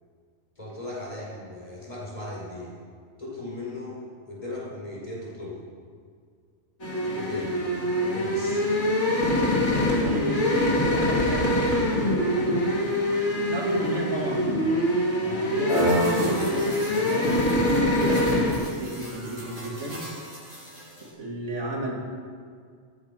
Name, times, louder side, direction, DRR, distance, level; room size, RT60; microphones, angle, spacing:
voice 1, 0.6-2.7 3.2-4.0 4.3-5.6 7.0-7.6 8.0-8.7, left 2 dB, 30° left, -5 dB, 5.3 m, -37 dB
sound 1, 6.8-18.5, left 1 dB, 70° left, 3.1 m, -24 dB
voice 2, 10.0-11.7 13.5-14.5 15.2-17.4 18.0-20.1 21.0-22.0, right 1 dB, 75° right, -1 dB, 2.8 m, -32 dB
sound 2, 15.7-21.1, right 2 dB, 45° right, 3.8 m, -32 dB
14.5 x 14.0 x 5.9 m, 2.1 s
omnidirectional pair, 1.2 m